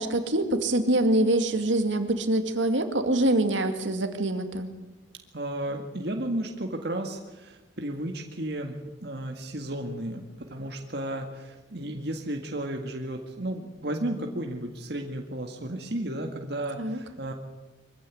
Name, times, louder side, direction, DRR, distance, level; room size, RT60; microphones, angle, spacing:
voice 1, 0.0-4.7 16.8-17.0, right 1 dB, 75° right, 7 dB, 2.4 m, -25 dB
voice 2, 5.3-8.8 9.0-17.3, right 1 dB, 60° right, 3 dB, 2.0 m, -33 dB
24.0 x 15.5 x 9.7 m, 1.2 s
head